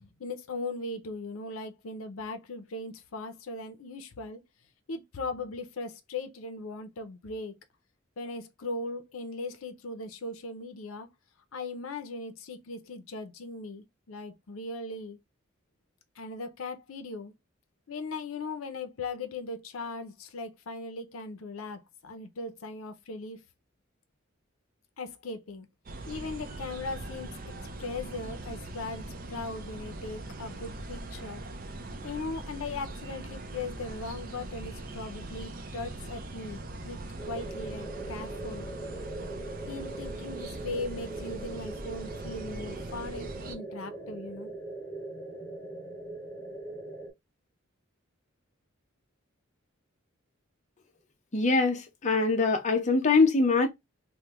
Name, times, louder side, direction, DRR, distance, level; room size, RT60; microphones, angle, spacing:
voice 1, 0.0-4.4 4.9-7.6 8.2-11.1 11.5-15.2 16.2-17.3 17.9-23.4 25.0-25.7 26.1-27.3 27.8-31.4 32.0-38.7 39.7-44.5, left 3 dB, 85° left, 0.5 m, -38 dB
sound 1, 25.9-43.6, right 2 dB, 45° right, 0.5 m, -41 dB
sound 2, 37.2-47.1, right 2 dB, 5° right, 1.1 m, -41 dB
voice 2, 51.3-53.7, left 3 dB, 35° left, 0.6 m, -23 dB
3.1 x 2.1 x 3.3 m
head